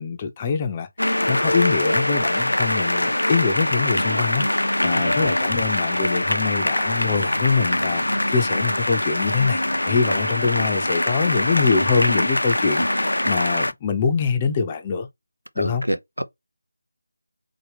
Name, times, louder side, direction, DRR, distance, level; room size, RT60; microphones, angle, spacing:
voice 1, 0.0-15.1 15.6-15.8, left 5 dB, 20° left, 0.5 m, -24 dB
sound 1, 1.0-13.7, left 1 dB, 75° left, 0.4 m, -23 dB
voice 2, 15.6-16.2, right 1 dB, 85° right, 0.7 m, -27 dB
3.8 x 2.8 x 3.4 m
figure-of-eight pair, 160°, 0 cm